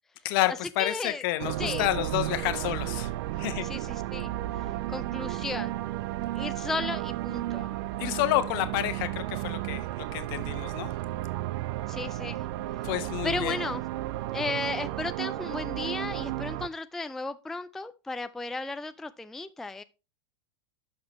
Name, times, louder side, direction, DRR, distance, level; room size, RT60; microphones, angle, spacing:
voice 1, 0.2-3.1 3.4-3.7 8.0-10.9 12.8-13.6, left 15 dB, 55° left, 1.1 m, -29 dB
voice 2, 0.8-1.2 1.6-1.9 3.6-4.3 4.9-5.8 6.3-7.7 11.9-12.5 13.2-13.8 14.3-19.8, left 3 dB, 5° left, 0.3 m, -34 dB
sound 1, 1.4-16.7, right 15 dB, 55° right, 0.5 m, -33 dB
11.5 x 6.0 x 3.1 m
hypercardioid pair, 105°, 14 cm